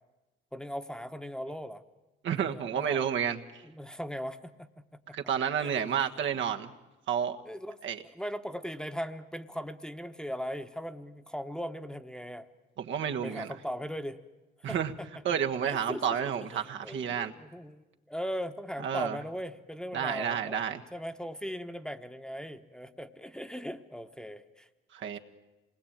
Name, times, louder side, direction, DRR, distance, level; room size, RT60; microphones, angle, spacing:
voice 1, 0.5-1.8 2.4-3.1 3.6-4.7 5.1-5.2 5.6-5.8 7.4-12.5 13.0-14.2 14.6-15.1 15.6-20.6 20.9-24.7 25.0-25.2, equal, 5° left, 8 dB, 1.2 m, -39 dB
voice 2, 2.2-3.4 5.1-6.7 7.1-7.4 7.8-8.0 12.8-13.5 14.6-14.9 15.2-17.3 18.8-19.2 19.9-20.8 24.9-25.2, right 8 dB, 70° right, 5 dB, 1.5 m, -30 dB
27.0 x 20.0 x 8.9 m, 1.1 s
cardioid pair, 90°, 20 cm